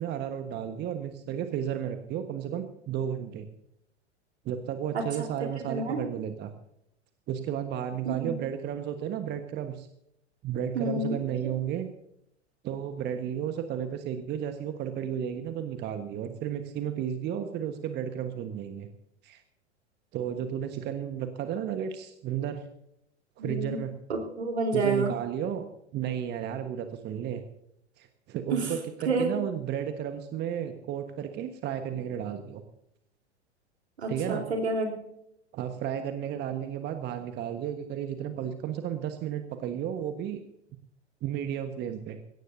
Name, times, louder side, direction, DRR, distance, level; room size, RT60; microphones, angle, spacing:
voice 1, 0.0-3.5 4.4-6.5 7.3-9.9 10.4-11.9 12.6-18.9 19.2-19.4 20.1-22.6 23.4-23.9 24.7-25.7 25.9-27.4 28.0-32.6 34.1-34.5 35.5-40.4 41.2-42.2, right 9 dB, 30° right, 8 dB, 1.3 m, -33 dB
voice 2, 5.4-6.0 8.1-8.3 10.7-11.2 23.4-23.8 24.1-25.1 28.5-28.6 29.1-29.3 34.0-34.9, right 3 dB, 70° right, 2 dB, 3.9 m, -29 dB
21.0 x 17.5 x 2.7 m, 0.77 s
figure-of-eight pair, 90°, 34 cm